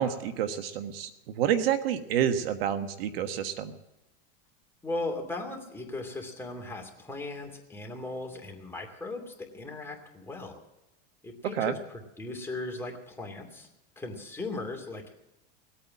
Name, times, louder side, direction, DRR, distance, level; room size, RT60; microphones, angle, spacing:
voice 1, 0.0-3.7 11.5-11.8, right 9 dB, 75° right, 9 dB, 1.4 m, -29 dB
voice 2, 4.8-10.6 11.2-13.7 14.0-15.1, left 2 dB, 10° left, 1 dB, 2.7 m, -37 dB
20.0 x 8.9 x 7.4 m, 0.93 s
supercardioid pair, 130°, 30 cm